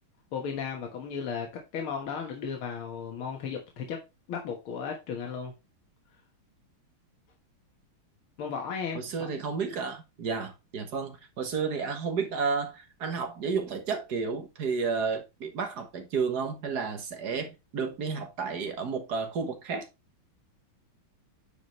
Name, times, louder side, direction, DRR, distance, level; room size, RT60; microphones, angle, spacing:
voice 1, 0.3-4.0 4.3-5.5 8.4-9.3, left 6 dB, 75° left, 2.3 m, -35 dB
voice 2, 8.9-19.9, right 5 dB, 50° right, 1.8 m, -32 dB
9.3 x 5.0 x 3.2 m
omnidirectional pair, 2.3 m